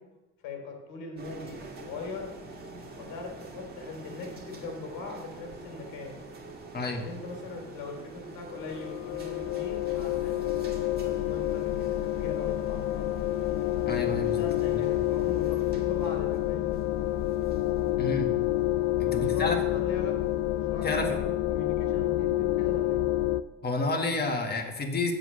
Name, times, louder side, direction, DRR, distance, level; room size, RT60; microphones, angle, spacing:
voice 1, 0.4-2.3 3.0-6.1 6.8-10.5 10.9-13.1 14.4-16.8 19.1-20.2 20.5-23.0, left 3 dB, 85° left, 2 dB, 3.1 m, -40 dB
sound 1, 1.2-20.9, right 3 dB, 25° right, 1.9 m, -47 dB
voice 2, 6.7-7.1 13.9-14.4 18.0-18.3 19.0-19.6 20.8-21.2 23.6-25.1, left 2 dB, 30° left, 3 dB, 1.7 m, -29 dB
sound 2, 8.5-23.4, left 15 dB, 45° left, 0.5 m, -28 dB
8.0 x 7.8 x 6.4 m, 1.1 s
cardioid pair, 120°, 34 cm